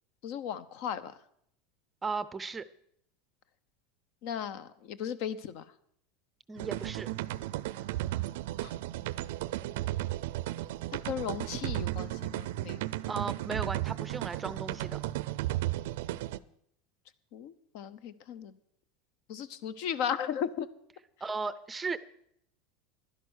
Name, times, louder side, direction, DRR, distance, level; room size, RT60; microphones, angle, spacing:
voice 1, 0.2-1.2 4.2-5.6 8.6-8.7 11.0-12.8 17.3-18.5 19.3-20.7, left 8 dB, 60° left, 16 dB, 0.9 m, -36 dB
voice 2, 2.0-2.7 6.5-7.1 13.1-15.0 21.2-22.0, right 4 dB, 15° right, 16 dB, 0.5 m, -36 dB
sound 1, 6.6-16.4, right 16 dB, 75° right, 0.5 m, -34 dB
11.5 x 11.0 x 6.4 m, 0.70 s
supercardioid pair, 135°, 0 cm